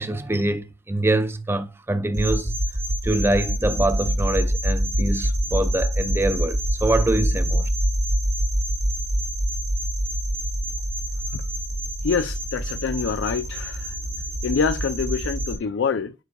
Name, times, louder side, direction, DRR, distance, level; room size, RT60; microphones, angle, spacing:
voice 1, 0.0-2.5 3.0-7.7, right 2 dB, 15° right, 0.5 m, -24 dB
sound 1, 2.1-15.6, right 1 dB, 85° right, 2.6 m, -25 dB
voice 2, 12.0-14.0 14.4-16.1, left 5 dB, 80° left, 0.4 m, -25 dB
9.4 x 4.7 x 2.2 m
head